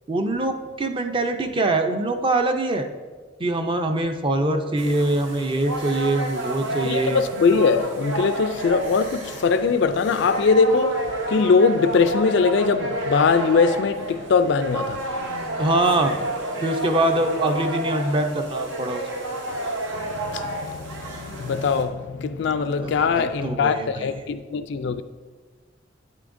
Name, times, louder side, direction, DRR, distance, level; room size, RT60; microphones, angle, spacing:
voice 1, 0.1-2.9 3.4-7.2 15.6-16.1 16.6-19.0 22.8-24.1, right 2 dB, 25° right, 0.5 m, -23 dB
sound 1, 4.8-21.8, right 1 dB, 80° right, 1.1 m, -30 dB
voice 2, 6.8-11.0 11.3-15.0 20.3-25.0, left 5 dB, 65° left, 0.4 m, -21 dB
9.3 x 8.3 x 2.6 m
head